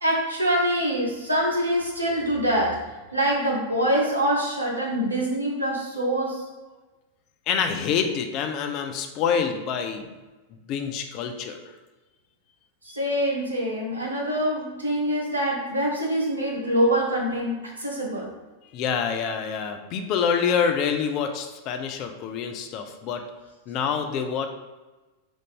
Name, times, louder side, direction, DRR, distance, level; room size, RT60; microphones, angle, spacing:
voice 1, 0.0-2.8 3.1-6.4 12.8-17.5 17.8-18.3, right 1 dB, 80° right, -3 dB, 0.9 m, -24 dB
voice 2, 7.5-10.1 10.7-11.6 12.9-13.0 18.7-23.2 23.7-24.5, left 7 dB, 40° left, 6 dB, 0.4 m, -26 dB
4.0 x 2.5 x 3.5 m, 1.2 s
figure-of-eight pair, 90°, 0 cm